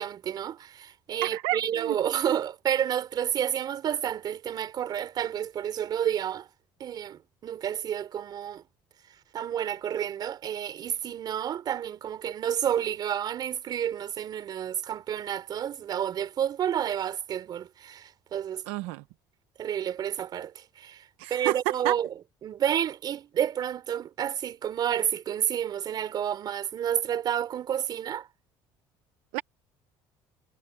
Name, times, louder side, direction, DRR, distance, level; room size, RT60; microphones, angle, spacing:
voice 1, 0.0-6.5 6.8-8.6 9.3-18.6 19.6-20.5 20.8-21.0 21.3-22.1 22.4-28.3, right 9 dB, 50° right, 4.2 m, -30 dB
voice 2, 1.2-2.0 18.7-19.0 21.2-22.0 29.3-29.4, right 19 dB, 85° right, 0.9 m, -30 dB
cardioid pair, 110°, 9 cm